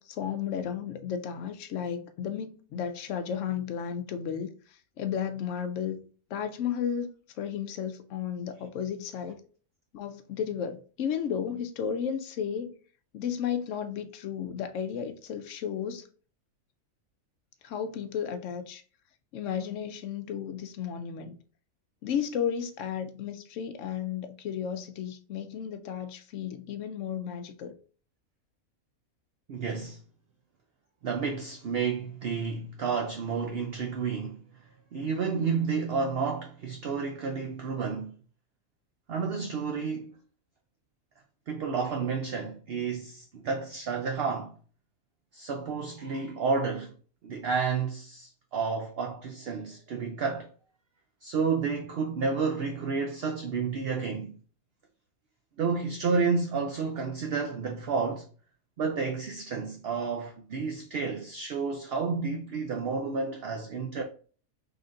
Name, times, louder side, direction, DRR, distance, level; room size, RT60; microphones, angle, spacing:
voice 1, 0.0-4.5 5.0-6.0 6.3-7.1 7.4-9.4 9.9-12.7 13.1-16.0 17.6-18.8 19.3-21.4 22.0-27.7, left 8 dB, 70° left, 0.8 m, -33 dB
voice 2, 29.5-30.0 31.0-34.4 34.9-38.1 39.1-40.1 41.5-44.5 45.3-46.9 47.2-50.5 51.2-54.3 55.6-58.3 58.8-64.0, right 5 dB, 60° right, 0.6 m, -30 dB
3.9 x 3.3 x 2.5 m
omnidirectional pair, 1.5 m